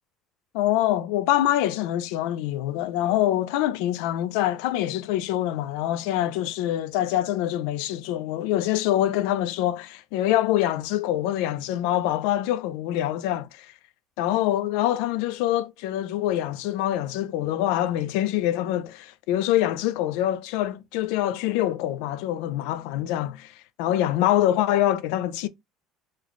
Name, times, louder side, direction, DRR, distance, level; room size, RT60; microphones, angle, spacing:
voice 1, 0.5-13.7 14.2-25.5, left 13 dB, 75° left, 0.4 m, -25 dB
3.1 x 2.1 x 3.6 m
cardioid pair, 160°, 0 cm